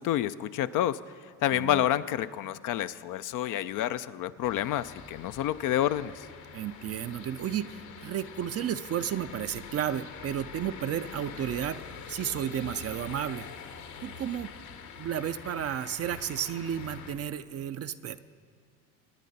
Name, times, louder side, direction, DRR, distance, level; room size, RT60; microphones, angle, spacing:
voice 1, 0.0-6.3, left 12 dB, 45° left, 13 dB, 0.5 m, -29 dB
voice 2, 1.5-1.8 6.5-11.8 12.1-13.5 14.0-14.5 15.0-18.3, right 10 dB, 35° right, 12 dB, 0.5 m, -32 dB
sound 1, 4.4-17.1, left 7 dB, 70° left, 1.7 m, -45 dB
25.0 x 9.8 x 4.1 m, 2.1 s
hypercardioid pair, 65°, 46 cm